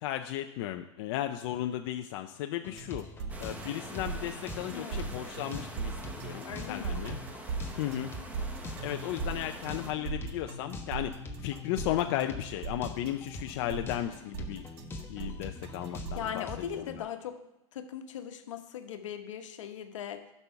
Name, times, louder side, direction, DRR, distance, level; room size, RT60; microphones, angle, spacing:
voice 1, 0.0-3.1 3.4-7.2 7.7-8.1 8.8-11.1 11.4-14.6 15.1-16.5 16.8-16.9, left 12 dB, 55° left, 6 dB, 0.6 m, -35 dB
sound 1, 2.6-17.0, left 2 dB, 15° left, 1.2 m, -44 dB
sound 2, 2.8-16.4, right 5 dB, 55° right, 1.2 m, -39 dB
sound 3, 3.3-9.9, right 2 dB, 10° right, 1.1 m, -46 dB
voice 2, 4.7-5.0 6.4-7.0 15.9-17.4 17.7-20.3, left 9 dB, 80° left, 7 dB, 1.2 m, -39 dB
11.5 x 5.5 x 5.7 m, 0.92 s
hypercardioid pair, 130°, 16 cm